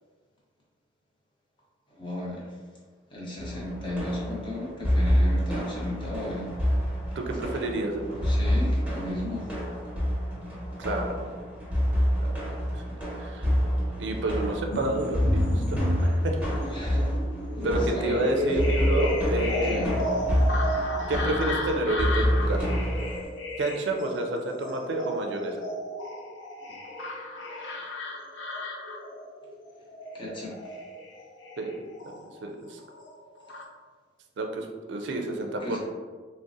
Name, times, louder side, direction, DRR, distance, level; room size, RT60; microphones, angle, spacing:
voice 1, 1.9-2.5 3.1-6.5 8.2-9.5 16.7-17.1 17.5-18.6 19.6-20.0 26.7-26.8 30.1-30.6 35.6-35.8, left 1 dB, 25° left, -5 dB, 0.7 m, -35 dB
sound 1, 3.4-23.2, equal, 10° right, 0.9 m, -28 dB
voice 2, 7.2-8.3 10.8-11.3 12.2-12.3 12.7-12.8 13.2-13.5 14.0-16.4 17.6-20.1 21.1-22.7 23.6-25.6 31.6-32.8 34.4-35.8, right 2 dB, 70° right, 3 dB, 0.4 m, -30 dB
sound 2, 14.7-32.5 32.8-33.6, left 1 dB, 80° left, 0.5 m, -32 dB
3.6 x 2.1 x 2.6 m, 1.5 s
head